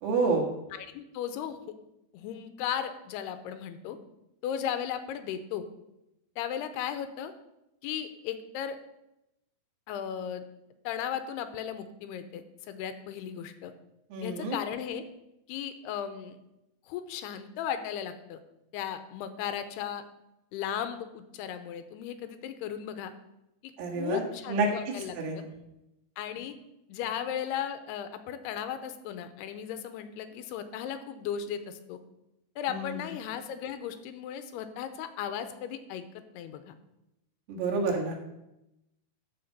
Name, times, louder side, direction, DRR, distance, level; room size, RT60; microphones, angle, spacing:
voice 1, 0.0-0.5 14.1-14.6 23.8-24.2 24.5-25.5 32.7-33.1 37.5-38.1, right 3 dB, 80° right, -1 dB, 3.8 m, -29 dB
voice 2, 0.7-1.6 2.1-4.0 4.4-5.7 6.4-7.3 7.8-8.8 9.9-10.5 10.8-13.7 14.2-15.0 15.5-16.4 16.9-18.4 18.7-20.0 20.5-23.1 23.6-25.4 26.2-26.6 26.9-32.0 32.6-36.0 36.3-36.7, left 9 dB, 85° left, 10 dB, 2.8 m, -36 dB
13.5 x 4.8 x 6.7 m, 0.89 s
omnidirectional pair, 4.6 m